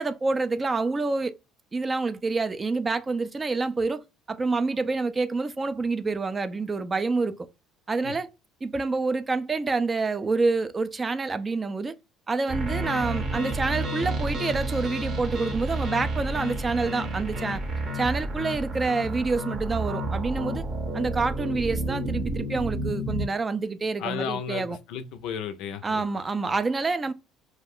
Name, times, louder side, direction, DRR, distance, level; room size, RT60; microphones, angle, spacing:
voice 1, 0.0-1.3 1.7-4.0 4.3-7.3 7.9-8.3 8.6-11.9 12.3-17.6 17.9-20.6 20.9-24.8 25.8-27.1, right 3 dB, 25° right, 0.3 m, -27 dB
sound 1, 12.5-23.3, right 1 dB, 45° right, 0.7 m, -30 dB
voice 2, 24.0-26.0 26.4-26.5, left 8 dB, 70° left, 0.4 m, -34 dB
2.4 x 2.0 x 3.5 m
hypercardioid pair, 70°, 0 cm